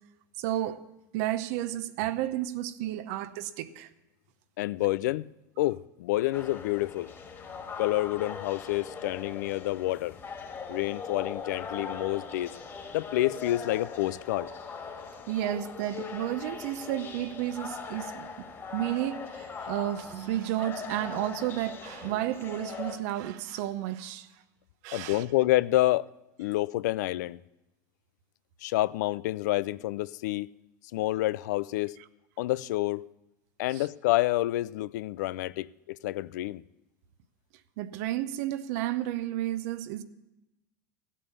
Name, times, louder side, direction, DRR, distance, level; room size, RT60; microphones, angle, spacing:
voice 1, 0.4-0.8 1.1-3.9 15.3-18.5 18.7-24.3 24.8-25.2 33.7-33.8 37.8-40.0, right 13 dB, 65° right, 0.8 m, -32 dB
voice 2, 4.6-5.3 5.6-7.1 7.8-10.2 10.7-12.5 12.9-14.5 24.9-26.1 26.4-27.4 28.6-30.5 30.9-32.0 32.4-33.1 33.6-36.6, left 17 dB, 75° left, 0.4 m, -28 dB
sound 1, 6.3-23.0, left 5 dB, 25° left, 2.1 m, -40 dB
15.5 x 8.4 x 7.0 m
hypercardioid pair, 105°, 10 cm